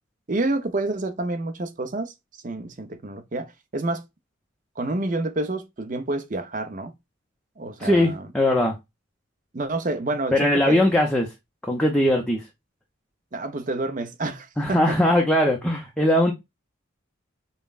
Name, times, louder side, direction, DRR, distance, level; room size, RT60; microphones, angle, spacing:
voice 1, 0.3-2.1 2.4-4.0 4.8-6.9 7.6-8.3 9.5-10.9 13.3-15.0, right 2 dB, 35° right, 0.6 m, -28 dB
voice 2, 7.8-8.8 10.3-11.3 11.7-12.4 14.6-16.3, left 1 dB, 5° left, 0.5 m, -20 dB
5.4 x 2.1 x 2.3 m
head